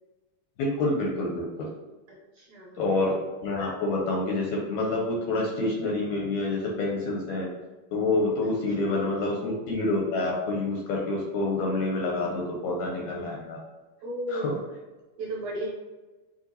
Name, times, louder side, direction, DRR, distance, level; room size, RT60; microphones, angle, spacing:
voice 1, 0.6-1.7 2.8-3.1 3.4-7.5 7.9-13.6 14.3-14.5, left 2 dB, 80° left, -2 dB, 1.8 m, -27 dB
voice 2, 2.1-2.8 8.8-9.1 14.0-14.5 15.2-15.7, right 1 dB, 70° right, -4 dB, 1.8 m, -35 dB
6.6 x 2.6 x 2.7 m, 1.2 s
omnidirectional pair, 3.8 m